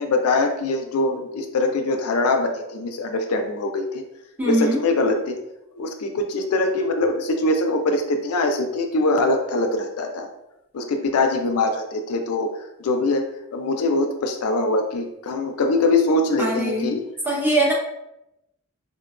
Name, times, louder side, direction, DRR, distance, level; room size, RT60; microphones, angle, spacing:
voice 1, 0.0-4.0 4.4-5.4 5.8-10.3 10.7-12.5 12.8-13.2 13.5-17.0, left 2 dB, 75° left, 4 dB, 0.4 m, -22 dB
voice 2, 4.4-4.8 16.4-16.9 17.2-17.7, right 1 dB, 10° right, -3 dB, 0.7 m, -21 dB
4.1 x 2.2 x 2.3 m, 0.89 s
head